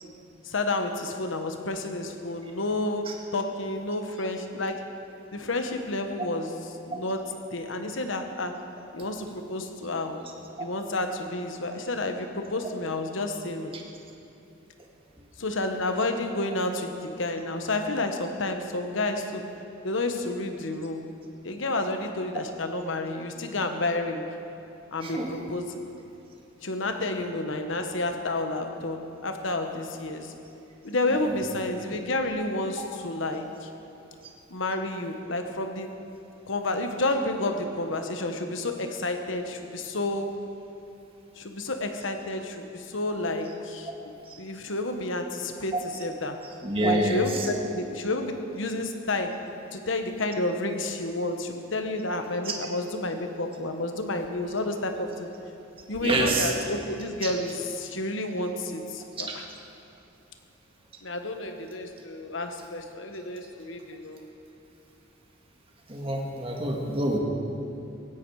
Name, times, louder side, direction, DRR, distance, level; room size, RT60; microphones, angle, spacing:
voice 1, 0.4-4.8 5.3-8.6 8.9-10.3 10.6-13.7 15.4-19.5 19.8-21.1 21.4-24.3 24.9-25.8 26.6-30.3 30.8-33.7 34.5-35.9 36.5-40.5 41.4-46.4 46.8-49.4 49.7-55.3 55.9-59.5 61.0-64.3, left 2 dB, 65° left, 6 dB, 1.3 m, -30 dB
voice 2, 25.0-25.4 46.6-47.2 56.0-56.5 65.9-67.2, right 1 dB, 25° right, -1 dB, 2.0 m, -26 dB
17.0 x 16.5 x 4.8 m, 2.8 s
head